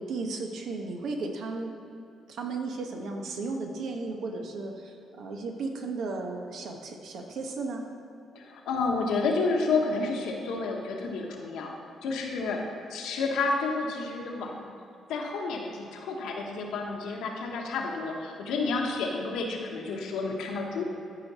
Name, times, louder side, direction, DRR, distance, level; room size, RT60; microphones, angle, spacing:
voice 1, 0.0-1.8 2.3-7.9, right 3 dB, 75° right, 3 dB, 1.1 m, -35 dB
voice 2, 8.3-11.7 12.0-12.6 12.9-14.7 15.1-20.8, left 3 dB, 85° left, 0 dB, 1.3 m, -30 dB
13.0 x 5.1 x 4.2 m, 2.7 s
cardioid pair, 90°, 0 cm